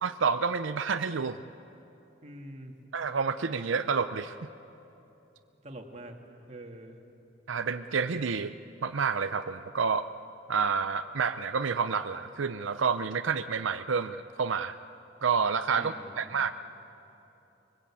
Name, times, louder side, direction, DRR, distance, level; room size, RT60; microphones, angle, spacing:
voice 1, 0.0-1.4 2.9-4.5 7.5-8.5 8.8-10.1 10.5-14.8 15.2-16.5, right 5 dB, 85° right, 10 dB, 0.6 m, -29 dB
voice 2, 2.2-2.7 5.6-6.1 6.5-7.0 15.8-16.3, right 1 dB, 35° right, 2 dB, 2.2 m, -45 dB
25.0 x 22.0 x 8.6 m, 2.9 s
head